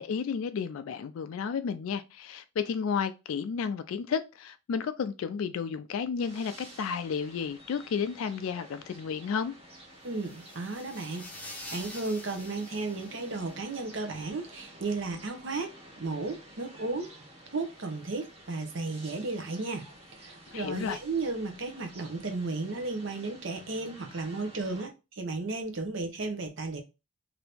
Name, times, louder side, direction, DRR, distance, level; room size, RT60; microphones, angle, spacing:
voice 1, 0.0-9.5 20.5-21.0, left 6 dB, 85° left, 0.3 m, -32 dB
sound 1, 6.2-24.8, right 1 dB, 30° right, 0.9 m, -51 dB
sound 2, 10.0-13.9, left 1 dB, 5° left, 0.5 m, -47 dB
voice 2, 10.0-15.7 16.0-17.1 17.5-19.8 20.2-26.8, right 3 dB, 65° right, 0.8 m, -34 dB
2.9 x 2.6 x 3.3 m
head